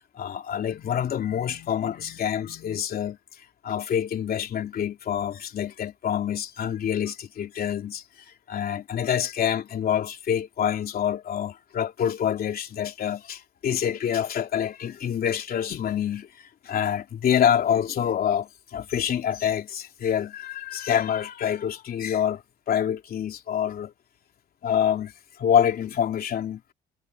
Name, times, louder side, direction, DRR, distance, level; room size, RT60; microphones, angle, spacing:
voice 1, 0.1-3.2 3.6-8.0 8.5-23.9 24.6-25.1 25.4-26.6, left 9 dB, 50° left, 3.2 m, -26 dB
cardioid pair, 115°, 20 cm